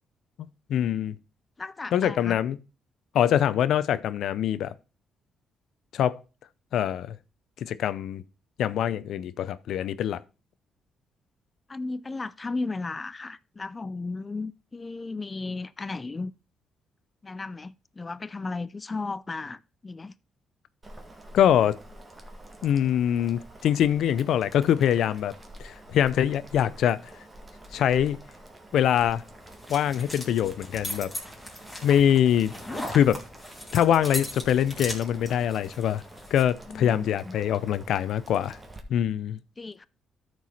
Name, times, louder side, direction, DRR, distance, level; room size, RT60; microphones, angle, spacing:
voice 1, 0.7-1.2 1.9-2.6 3.1-4.7 5.9-6.2 6.7-7.2 7.6-8.2 8.6-10.2 21.3-21.7 22.6-25.3 25.6-27.0 27.7-28.2 28.7-29.2 29.7-31.1 31.8-32.5 32.9-33.2 33.7-36.0 36.3-38.6 38.9-39.4, left 10 dB, 75° left, 0.6 m, -23 dB
voice 2, 1.6-2.4 11.7-16.3 17.2-20.1 36.7-37.3 39.6-39.9, left 3 dB, 25° left, 0.3 m, -35 dB
Boiling, 20.8-38.8, right 1 dB, 20° right, 1.8 m, -48 dB
sound 1, 29.0-36.5, left 1 dB, 5° left, 3.2 m, -39 dB
12.5 x 4.7 x 4.1 m
cardioid pair, 90°, 0 cm